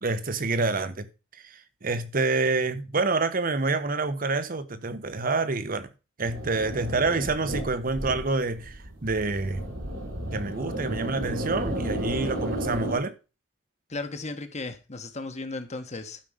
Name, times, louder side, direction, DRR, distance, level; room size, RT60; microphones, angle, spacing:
voice 1, 0.0-1.1 1.4-5.9 6.2-9.7 10.3-13.1, right 3 dB, 45° right, 1.0 m, -27 dB
sound 1, 6.2-13.0, right 1 dB, 80° right, 3.2 m, -33 dB
voice 2, 13.9-16.2, left 3 dB, 35° left, 1.2 m, -35 dB
12.0 x 5.3 x 5.1 m
head